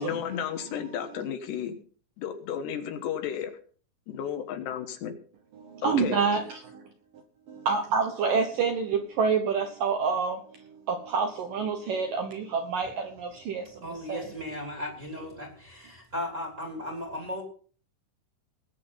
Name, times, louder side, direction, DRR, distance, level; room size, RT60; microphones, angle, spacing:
voice 1, 0.0-1.8 2.2-3.5 4.1-5.1 5.8-6.2, left 9 dB, 70° left, 3.3 m, -33 dB
voice 2, 5.6-6.9 7.5-14.2, right 5 dB, 65° right, 2.2 m, -28 dB
voice 3, 13.8-17.4, left 1 dB, 20° right, 2.4 m, -36 dB
20.5 x 7.6 x 5.7 m
omnidirectional pair, 5.4 m